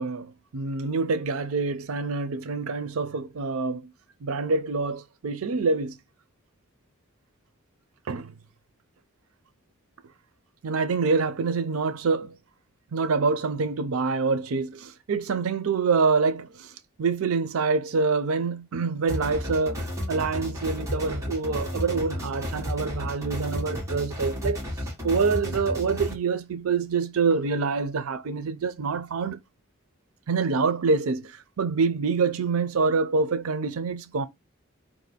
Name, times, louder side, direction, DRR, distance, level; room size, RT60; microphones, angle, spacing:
voice 1, 0.0-3.9 4.2-6.0 8.1-8.3 10.6-12.3 12.9-16.7 17.0-24.6 25.0-29.4 30.3-34.3, right 4 dB, 85° right, 0.5 m, -26 dB
sound 1, 19.1-26.1, equal, 15° right, 1.4 m, -32 dB
4.7 x 2.6 x 4.0 m
head